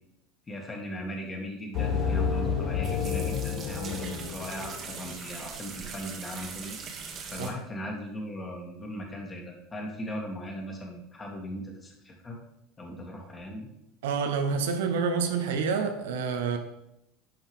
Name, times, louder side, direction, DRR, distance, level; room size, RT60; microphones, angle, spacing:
voice 1, 0.5-12.4 12.8-13.7, equal, 25° left, 2.3 m, -38 dB
sound 1, 1.7-5.2, left 6 dB, 55° left, 0.7 m, -30 dB
sound 2, 1.7-7.5, right 5 dB, 40° right, 1.4 m, -42 dB
voice 2, 14.0-16.6, right 5 dB, 70° right, 0.9 m, -28 dB
10.0 x 5.6 x 3.7 m
figure-of-eight pair, 75°, 0 cm